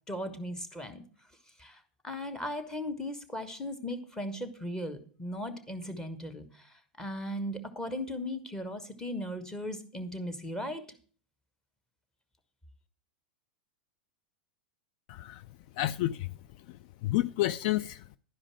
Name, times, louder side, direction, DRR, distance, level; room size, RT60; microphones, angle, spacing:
voice 1, 0.1-1.0 1.6-10.8, left 1 dB, 10° left, 1.6 m, -37 dB
voice 2, 15.1-15.4 15.8-16.3 16.7-18.0, left 15 dB, 55° left, 0.4 m, -30 dB
11.5 x 5.0 x 7.5 m
hypercardioid pair, 95°, 5 cm